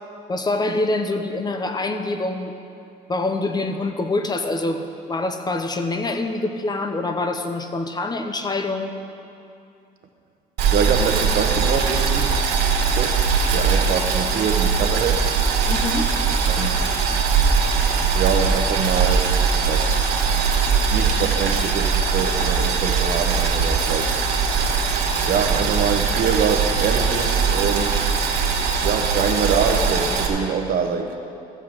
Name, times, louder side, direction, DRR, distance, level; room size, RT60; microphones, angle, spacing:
voice 1, 0.3-2.5 3.1-8.9 15.7-16.1, left 2 dB, 25° left, 7 dB, 0.8 m, -25 dB
Boiling, 10.6-30.3, right 5 dB, 80° right, 1.7 m, -21 dB
voice 2, 10.7-12.3 12.9-13.2 13.5-15.2 16.5-16.8 18.1-19.3 19.7-19.9 20.9-24.1 25.3-28.1 28.8-31.2, right 6 dB, 60° right, 5 dB, 1.0 m, -24 dB
14.0 x 5.6 x 7.0 m, 2.6 s
cardioid pair, 110°, 17 cm